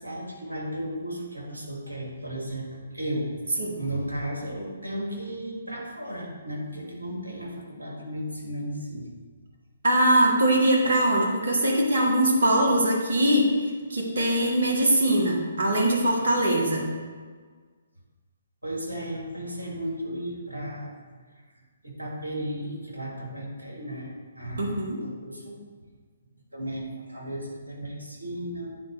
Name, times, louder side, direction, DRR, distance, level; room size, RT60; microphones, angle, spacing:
voice 1, 0.0-3.3 3.8-9.1 18.6-20.9 21.8-24.7 25.0-25.6 26.5-28.7, equal, 80° right, -2 dB, 1.9 m, -34 dB
voice 2, 9.8-13.5 13.9-16.9 24.6-25.0, right 1 dB, 55° right, -1 dB, 1.6 m, -22 dB
9.4 x 3.9 x 4.5 m, 1.5 s
figure-of-eight pair, 130°, 0 cm